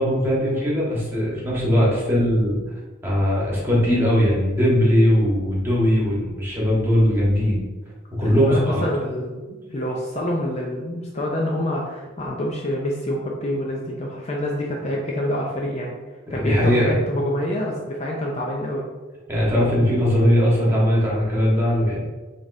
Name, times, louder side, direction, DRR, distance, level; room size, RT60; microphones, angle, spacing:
voice 1, 0.0-2.6 3.0-7.6 8.2-8.8 16.3-16.9 19.3-22.0, equal, 10° right, -6 dB, 1.3 m, -19 dB
voice 2, 8.2-15.9 16.3-18.8, left 1 dB, 35° left, -2 dB, 0.5 m, -27 dB
5.1 x 3.6 x 2.6 m, 1.2 s
head